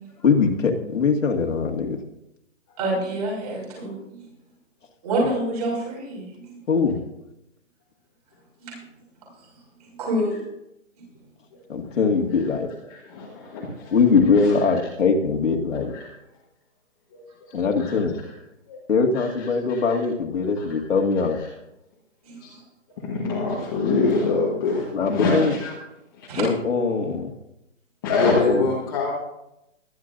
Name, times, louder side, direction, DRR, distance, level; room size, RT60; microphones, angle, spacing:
voice 1, 0.2-2.0 6.7-7.0 11.7-12.7 13.9-15.9 17.5-18.2 18.9-21.4 24.9-25.6 26.4-27.3 28.5-28.6, left 5 dB, 75° left, 1 dB, 2.1 m, -21 dB
voice 2, 2.8-3.9 5.0-6.3 8.6-8.8 10.0-10.3 22.2-22.4 26.3-26.4, right 1 dB, 30° right, -3 dB, 6.0 m, -26 dB
voice 3, 12.9-13.9 15.9-16.0 17.8-17.9 18.7-18.8 19.1-19.3 19.7-19.8 20.6-20.7 22.4-22.6 23.0-25.7 26.2-26.3 28.0-29.1, left 3 dB, 15° left, -5 dB, 1.4 m, -24 dB
22.0 x 11.0 x 2.6 m, 0.86 s
hypercardioid pair, 175°, 38 cm